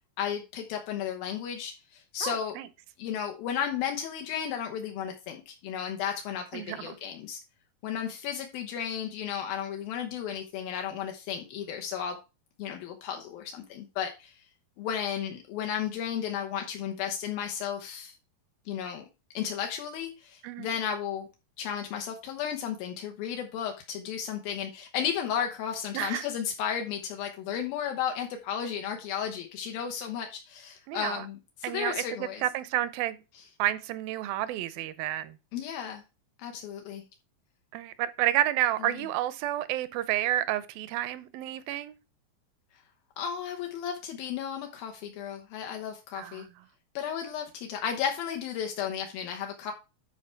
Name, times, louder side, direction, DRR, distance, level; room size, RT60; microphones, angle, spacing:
voice 1, 0.2-2.6 3.0-7.4 7.8-12.2 12.6-14.4 14.8-18.1 18.7-19.1 19.3-21.3 21.6-32.4 33.3-33.4 35.5-36.0 36.4-37.0 38.8-39.0 43.2-46.5 46.9-49.7, left 8 dB, 80° left, 3.0 m, -34 dB
voice 2, 2.2-2.7 6.5-7.0 20.4-20.7 25.9-26.2 30.9-31.3 31.6-33.2 33.6-35.4 37.7-41.9 46.2-46.5, right 13 dB, 80° right, 2.5 m, -30 dB
10.5 x 4.8 x 4.5 m
omnidirectional pair, 4.2 m